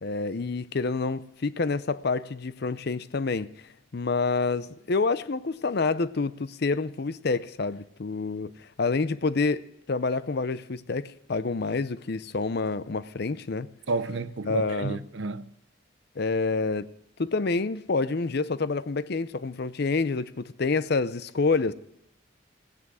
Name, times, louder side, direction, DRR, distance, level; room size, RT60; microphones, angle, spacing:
voice 1, 0.0-3.5 3.9-13.7 14.4-15.0 16.2-16.9 17.2-21.7, left 4 dB, 55° left, 0.6 m, -28 dB
voice 2, 13.9-15.4, right 3 dB, 60° right, 0.6 m, -31 dB
16.0 x 9.7 x 6.3 m
head